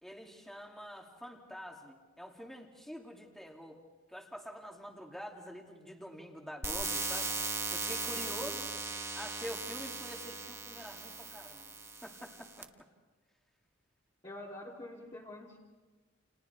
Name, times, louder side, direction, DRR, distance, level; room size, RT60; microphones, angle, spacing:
voice 1, 0.0-3.8 4.1-7.3 7.7-8.7 9.1-11.7 12.0-12.7, equal, ahead, 0 dB, 2.6 m, -46 dB
sound 1, 6.6-12.6, right 3 dB, 15° right, 1.2 m, -38 dB
voice 2, 14.2-15.6, left 1 dB, 30° left, -6 dB, 3.2 m, -46 dB
30.0 x 29.5 x 3.5 m, 1.3 s
head